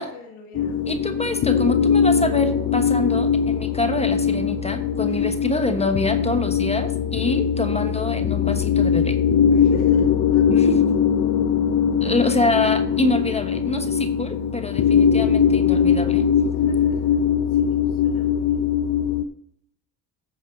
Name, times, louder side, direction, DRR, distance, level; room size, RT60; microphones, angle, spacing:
voice 1, 0.0-0.9 1.3-1.6 5.1-5.4 9.5-11.0 16.5-17.2 17.5-18.6, left 3 dB, 75° left, 1 dB, 2.4 m, -41 dB
sound 1, 0.5-19.2, left 7 dB, 40° left, 0.5 m, -21 dB
voice 2, 0.9-9.2 10.5-10.8 12.0-16.3, left 2 dB, 15° left, 7 dB, 1.2 m, -26 dB
14.5 x 5.0 x 4.0 m, 0.71 s
supercardioid pair, 70°, 49 cm